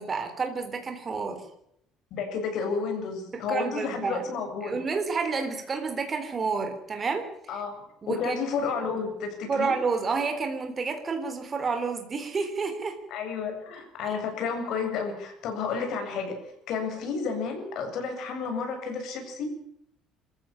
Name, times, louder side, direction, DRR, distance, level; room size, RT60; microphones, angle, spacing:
voice 1, 0.0-1.4 3.3-4.2 4.6-7.3 8.0-8.4 9.5-13.0, right 4 dB, 20° right, 6 dB, 3.7 m, -29 dB
voice 2, 2.1-4.8 7.5-9.7 13.1-16.3 16.7-19.4, left 5 dB, 50° left, 5 dB, 7.5 m, -31 dB
26.0 x 15.0 x 8.8 m, 0.75 s
cardioid pair, 175°, 0 cm